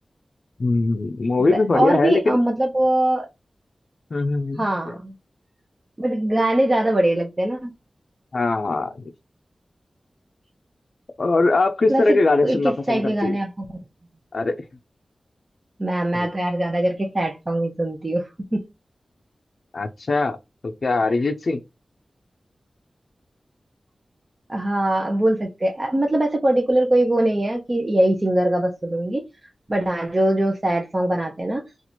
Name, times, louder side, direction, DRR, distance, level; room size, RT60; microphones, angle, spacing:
voice 1, 0.6-2.4 4.1-5.0 8.3-9.1 11.2-13.4 14.3-14.6 16.1-16.3 19.7-20.4 20.6-21.6, left 3 dB, 65° left, 0.4 m, -21 dB
voice 2, 1.4-3.3 4.6-5.1 6.0-7.7 11.9-13.6 15.8-18.7 24.5-29.2 29.7-31.6, right 1 dB, 30° right, 0.6 m, -22 dB
2.8 x 2.4 x 4.2 m
wide cardioid pair, 70°, 0 cm